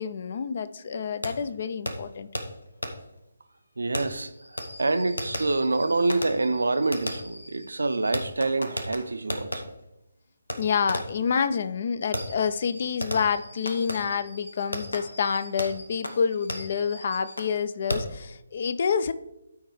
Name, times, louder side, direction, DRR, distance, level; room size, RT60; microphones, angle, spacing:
voice 1, 0.0-2.3 10.6-19.1, left 6 dB, 45° left, 0.4 m, -28 dB
Fireworks, 1.2-1.3 1.9-2.0 2.3-2.4 2.8-2.9 3.9-9.6 10.5-10.6 10.9-11.2 12.1-17.5 17.9-18.2, left 1 dB, 75° left, 1.0 m, -35 dB
voice 2, 3.8-4.3 4.8-9.7, right 3 dB, 65° right, 0.5 m, -26 dB
13.0 x 4.5 x 3.2 m
figure-of-eight pair, 145°, 0 cm